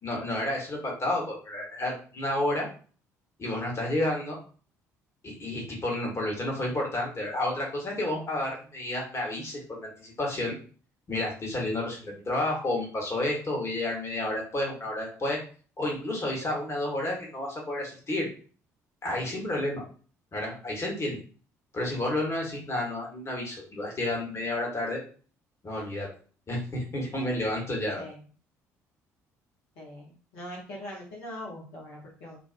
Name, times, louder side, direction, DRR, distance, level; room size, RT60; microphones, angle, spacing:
voice 1, 0.0-2.7 3.4-4.4 5.2-10.5 11.1-15.4 15.8-18.3 19.0-19.8 20.3-21.2 21.7-25.0 25.6-26.1 26.5-28.1, left 1 dB, 30° left, -2 dB, 1.1 m, -31 dB
voice 2, 29.8-32.4, left 1 dB, 65° left, -4 dB, 0.8 m, -42 dB
2.4 x 2.2 x 2.4 m, 0.40 s
figure-of-eight pair, 50°, 9 cm